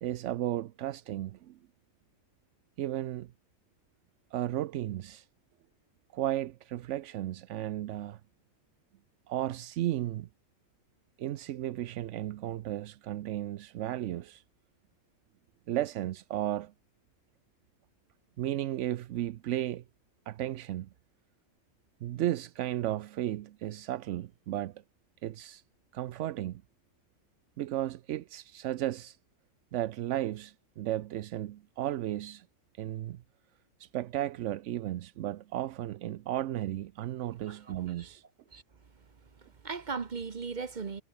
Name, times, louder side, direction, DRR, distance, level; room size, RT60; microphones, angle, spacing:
voice 1, 0.0-1.6 2.8-3.3 4.3-5.3 6.1-8.2 9.3-10.3 11.2-14.4 15.7-16.7 18.4-19.8 20.3-20.9 22.0-24.8 25.2-25.6 25.9-26.6 27.6-29.2 29.7-32.5 32.8-33.2 33.8-38.2, right 13 dB, 65° right, 0.8 m, -34 dB
voice 2, 37.5-38.1 38.5-38.6 39.6-41.0, right 5 dB, 35° right, 1.0 m, -38 dB
omnidirectional pair, 1.6 m